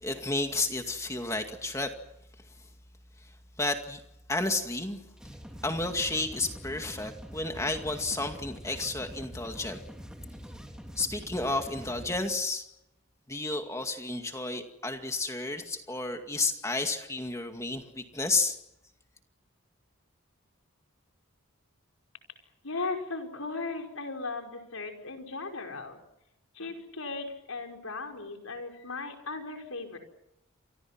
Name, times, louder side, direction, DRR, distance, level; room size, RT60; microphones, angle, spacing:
voice 1, 0.0-1.9 3.2-3.3 3.6-4.0 4.3-5.0 5.6-9.8 11.0-12.6 13.3-18.6, left 2 dB, 15° left, 5 dB, 2.2 m, -31 dB
sound 1, 5.1-12.2, equal, 5° right, 3.1 m, -45 dB
voice 2, 22.6-26.0 26.5-30.0, left 3 dB, 80° left, 3 dB, 5.6 m, -37 dB
29.0 x 25.5 x 6.1 m, 0.82 s
head